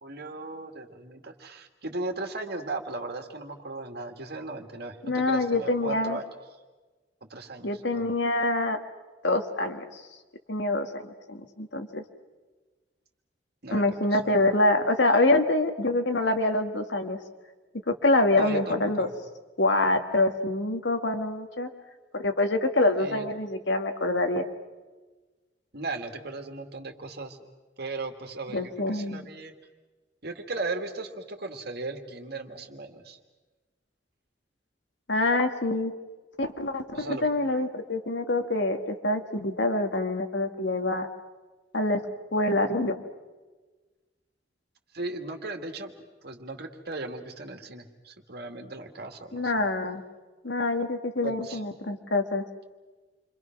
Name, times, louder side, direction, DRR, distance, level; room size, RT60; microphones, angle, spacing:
voice 1, 0.0-6.3 7.2-8.1 13.6-14.4 18.3-19.1 23.0-23.3 25.7-27.4 27.8-29.5 30.2-33.2 36.9-37.3 44.9-45.9 46.2-49.5 51.2-51.6, right 3 dB, 60° right, 5 dB, 2.3 m, -37 dB
voice 2, 5.0-6.2 7.6-8.8 9.2-10.0 10.5-12.0 13.7-17.2 17.9-19.1 19.6-21.7 22.1-24.4 28.5-29.3 35.1-35.9 36.4-41.1 41.7-42.0 42.3-43.0 49.3-50.0 50.4-52.4, left 2 dB, 80° left, 6 dB, 1.8 m, -25 dB
29.0 x 24.5 x 6.0 m, 1.3 s
head